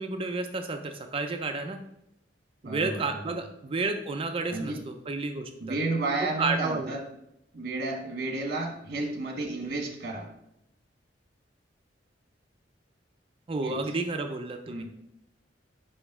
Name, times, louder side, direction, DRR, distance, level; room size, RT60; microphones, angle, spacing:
voice 1, 0.0-1.8 2.6-5.8 6.4-6.9 13.5-14.8, right 3 dB, 30° right, 6 dB, 0.4 m, -31 dB
voice 2, 2.6-3.2 4.5-4.8 5.6-7.0 7.5-10.3 13.6-13.8 14.7-14.8, right 2 dB, 55° right, 3 dB, 1.2 m, -32 dB
5.1 x 5.1 x 3.6 m, 0.81 s
head